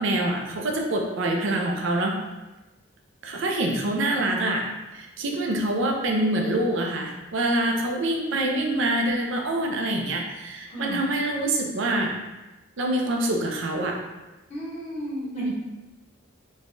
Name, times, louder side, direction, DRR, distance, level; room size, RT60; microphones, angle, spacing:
voice 1, 0.0-2.2 3.2-4.7 4.9-12.1 12.8-14.0 15.3-15.5, right 1 dB, 65° right, 1 dB, 0.4 m, -25 dB
voice 2, 8.4-8.9 10.7-11.1 14.5-15.5, equal, 30° left, -5 dB, 0.7 m, -32 dB
3.2 x 2.2 x 2.5 m, 1.1 s
head